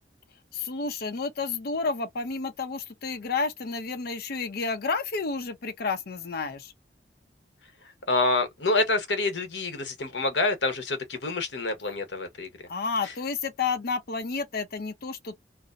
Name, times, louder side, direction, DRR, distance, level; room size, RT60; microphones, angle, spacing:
voice 1, 0.5-6.7 12.7-15.4, left 4 dB, 60° left, 0.6 m, -31 dB
voice 2, 8.1-12.5, left 2 dB, 85° left, 1.1 m, -27 dB
2.6 x 2.0 x 2.4 m
head